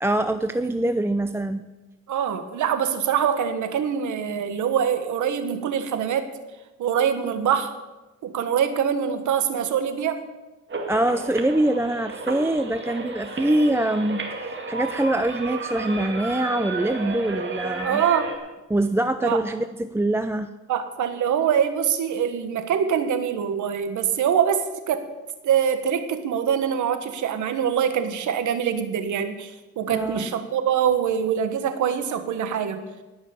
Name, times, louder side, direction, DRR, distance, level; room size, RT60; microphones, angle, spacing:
voice 1, 0.0-1.7 10.9-18.0 18.7-20.5 29.9-30.3, right 1 dB, 10° right, 10 dB, 0.5 m, -24 dB
voice 2, 2.1-6.3 6.8-7.7 8.2-10.2 17.8-18.3 19.2-19.4 20.7-25.0 25.4-29.5 29.8-32.8, right 8 dB, 75° right, 9 dB, 1.5 m, -24 dB
sound 1, 10.7-18.4, right 3 dB, 40° right, 2.4 m, -32 dB
19.0 x 6.4 x 7.0 m, 1.1 s
cardioid pair, 90°, 30 cm